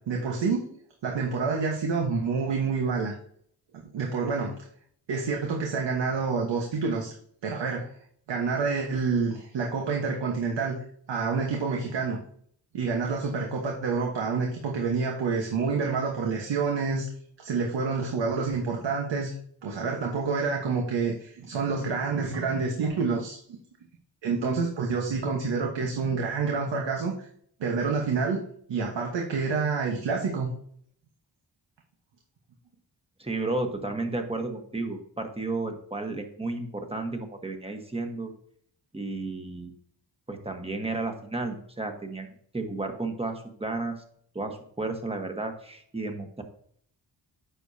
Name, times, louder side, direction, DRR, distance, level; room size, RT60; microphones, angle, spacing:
voice 1, 0.1-0.7 1.0-3.1 3.9-4.5 5.1-7.1 7.4-7.9 8.3-10.8 11.1-12.2 12.7-17.1 17.4-19.3 19.6-23.4 24.2-27.3 27.6-28.4 28.7-30.5, right 4 dB, 80° right, 0 dB, 1.3 m, -28 dB
voice 2, 33.2-38.3 38.9-39.7 40.3-42.3 42.5-44.0 44.3-46.4, right 2 dB, 15° right, 5 dB, 1.3 m, -32 dB
9.9 x 6.8 x 2.8 m, 0.63 s
cardioid pair, 95°, 43 cm